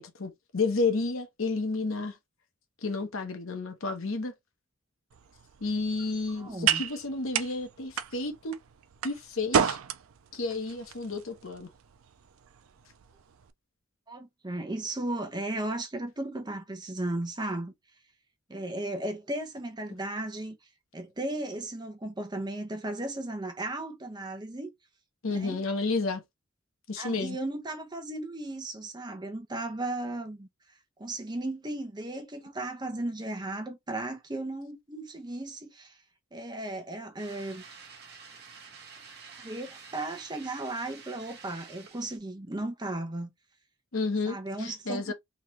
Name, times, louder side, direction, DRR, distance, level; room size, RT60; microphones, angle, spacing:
voice 1, 0.0-2.2 2.8-4.3 5.6-8.6 9.0-9.8 10.3-11.7 25.2-26.2 26.9-27.4 43.9-45.1, left 3 dB, 75° left, 1.0 m, -31 dB
sound 1, 5.1-13.5, right 8 dB, 85° right, 0.5 m, -33 dB
voice 2, 6.4-6.8 14.1-17.7 18.5-20.6 20.9-24.7 25.3-25.6 27.0-30.5 31.0-36.0 36.3-37.6 39.4-43.3 44.3-45.1, right 2 dB, 20° right, 0.9 m, -35 dB
sound 2, 37.2-42.2, right 5 dB, 50° right, 1.2 m, -49 dB
3.7 x 3.0 x 3.1 m
head